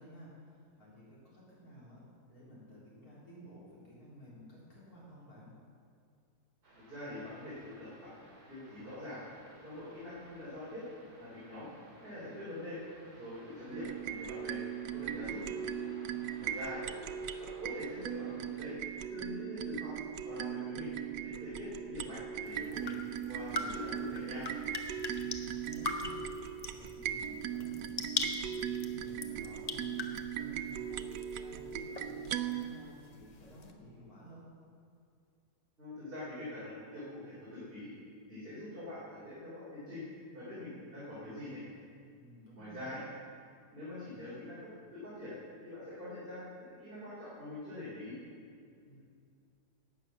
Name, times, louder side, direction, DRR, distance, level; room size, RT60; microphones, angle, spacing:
voice 1, 0.0-2.0 2.3-5.5 16.0-16.6 25.1-26.3 26.7-31.1 31.4-34.5 42.1-43.0 48.8-49.0, left 1 dB, 65° left, -7 dB, 4.1 m, -54 dB
sound 1, 6.6-18.7, right 1 dB, 65° right, 3.6 m, -58 dB
voice 2, 6.8-8.1 8.5-9.2 9.6-10.8 11.2-11.7 12.0-12.8 13.1-14.6 14.9-15.4 16.4-16.8 17.4-18.8 19.1-19.9 20.2-20.9 21.2-22.9 23.3-24.5 35.8-37.9 38.3-40.0 40.3-41.6 42.6-43.0 43.7-44.6 44.9-45.3 45.6-48.2, left 1 dB, 35° right, -10 dB, 3.7 m, -44 dB
sound 2, 13.7-32.6, right 9 dB, 90° right, 1.2 m, -39 dB
sound 3, 22.4-33.7, left 3 dB, 35° left, 0.7 m, -42 dB
11.5 x 8.9 x 7.2 m, 2.3 s
omnidirectional pair, 1.7 m